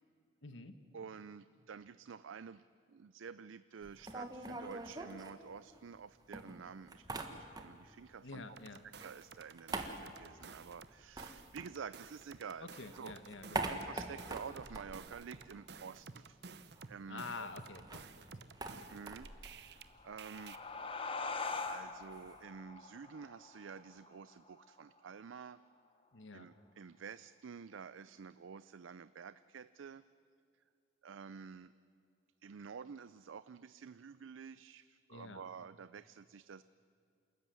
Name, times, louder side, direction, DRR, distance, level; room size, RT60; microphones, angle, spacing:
voice 1, 0.4-0.7 8.2-8.8 12.6-13.8 17.1-18.5 26.1-26.5 35.1-35.4, left 3 dB, 80° left, 9 dB, 1.2 m, -48 dB
voice 2, 0.9-8.4 9.0-13.1 13.6-16.4 16.9-17.5 18.9-20.6 21.6-25.6 26.3-30.0 31.0-31.7 32.4-36.6, right 6 dB, 90° right, 15 dB, 0.5 m, -50 dB
sound 1, 3.8-6.0 6.3-8.0 8.2-12.4 12.7-16.0 16.3-16.4 16.6-22.4, right 2 dB, 20° right, 1.4 m, -45 dB
sound 2, 8.6-10.9 11.2-19.8 20.2-20.6, right 5 dB, 60° right, 0.9 m, -53 dB
sound 3, 19.8-25.0, left 4 dB, 30° left, 1.1 m, -43 dB
28.5 x 14.0 x 9.3 m, 2.5 s
head